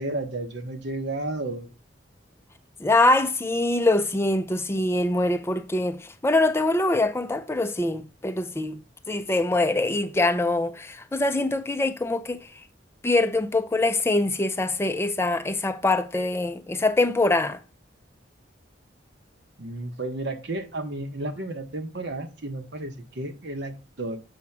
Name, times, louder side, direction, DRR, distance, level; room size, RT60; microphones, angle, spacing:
voice 1, 0.0-1.7 19.6-24.2, right 2 dB, 65° right, 1.2 m, -32 dB
voice 2, 2.8-8.8 9.1-12.5 13.0-17.6, left 2 dB, 15° left, 0.4 m, -24 dB
7.1 x 2.9 x 5.9 m
head